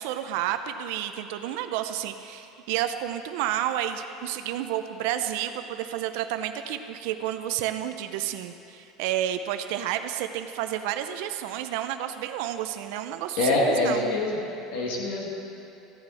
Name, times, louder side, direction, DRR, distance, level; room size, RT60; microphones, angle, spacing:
voice 1, 0.0-14.0, right 11 dB, 70° right, 8 dB, 0.5 m, -30 dB
voice 2, 13.4-14.4 14.7-15.4, left 2 dB, 70° left, -2 dB, 1.9 m, -25 dB
13.5 x 8.8 x 4.2 m, 2.7 s
cardioid pair, 170°, 0 cm